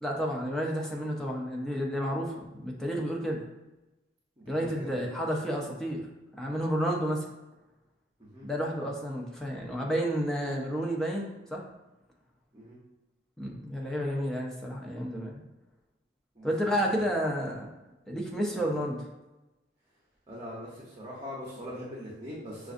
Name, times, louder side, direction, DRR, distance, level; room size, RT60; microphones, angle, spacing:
voice 1, 0.0-3.4 4.5-6.1 6.4-7.3 8.4-11.6 13.4-15.4 16.4-17.7 18.1-19.0, equal, 5° left, -2 dB, 0.6 m, -31 dB
voice 2, 4.4-5.1 8.2-8.5 12.5-12.8 16.3-17.1 18.5-18.7 20.3-22.7, equal, 25° right, -6 dB, 0.8 m, -42 dB
6.0 x 2.5 x 2.6 m, 1.0 s
head